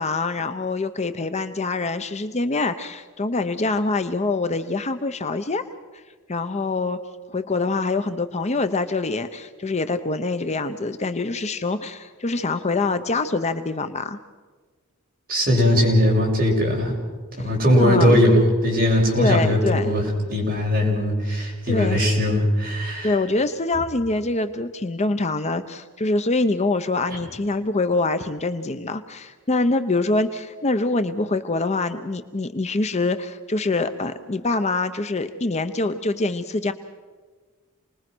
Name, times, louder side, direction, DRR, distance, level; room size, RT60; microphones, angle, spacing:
voice 1, 0.0-5.6 6.3-7.0 7.3-14.2 17.4-17.5 17.7-18.2 19.2-19.9 21.7-22.0 22.8-36.7, left 3 dB, 30° left, 9 dB, 0.7 m, -25 dB
voice 2, 15.3-17.0 17.4-20.0 20.3-23.1, left 1 dB, 40° right, -1 dB, 6.5 m, -19 dB
28.5 x 20.5 x 6.2 m, 1.4 s
head